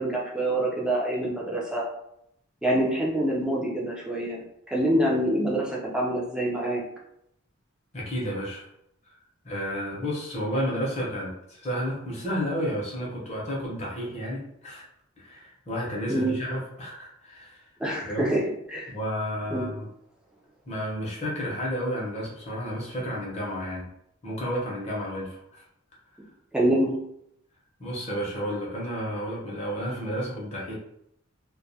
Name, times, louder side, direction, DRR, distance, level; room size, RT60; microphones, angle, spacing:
voice 1, 0.0-1.8 2.6-4.4 4.7-6.8 16.1-16.3 17.8-18.4 18.7-18.9 19.5-19.7 26.5-26.9, right 1 dB, 5° right, -4 dB, 0.5 m, -26 dB
voice 2, 7.9-8.7 9.0-9.2 9.4-14.8 15.2-17.6 18.1-18.3 18.9-19.8 20.7-23.9 24.2-25.6 27.8-30.7, equal, 30° left, -4 dB, 0.7 m, -31 dB
2.2 x 2.2 x 2.7 m, 0.75 s
head